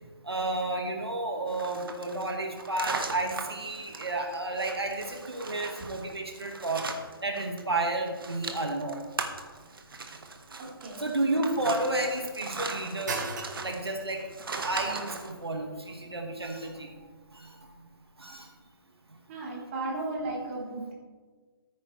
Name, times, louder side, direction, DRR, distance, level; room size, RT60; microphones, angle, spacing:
voice 1, 0.2-6.8 7.2-9.1 11.0-13.2 13.6-14.2 14.6-16.9 17.3-17.5 18.2-18.5, right 2 dB, 80° right, 2 dB, 1.8 m, -31 dB
sound 1, 1.5-7.6 7.9-15.3, right 4 dB, 65° right, 1.5 m, -39 dB
sound 2, 8.4-18.4, right 4 dB, 45° right, 1.8 m, -45 dB
voice 2, 10.6-11.1 19.3-20.9, right 2 dB, 30° right, -4 dB, 3.7 m, -35 dB
14.5 x 9.4 x 3.3 m, 1.4 s
figure-of-eight pair, 140°, 13 cm